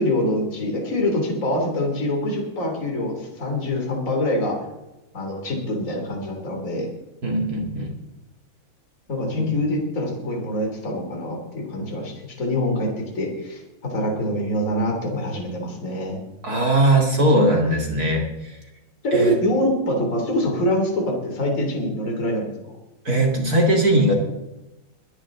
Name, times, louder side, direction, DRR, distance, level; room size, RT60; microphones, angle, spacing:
voice 1, 0.0-4.6 5.1-6.9 9.1-13.6 13.9-16.2 19.0-22.5, left 1 dB, 35° left, 1 dB, 3.3 m, -25 dB
voice 2, 7.2-7.9 9.3-9.5 16.4-18.6 19.1-19.4 23.0-24.1, right 1 dB, 45° right, 0 dB, 2.5 m, -19 dB
22.5 x 10.5 x 3.8 m, 0.97 s
omnidirectional pair, 2.4 m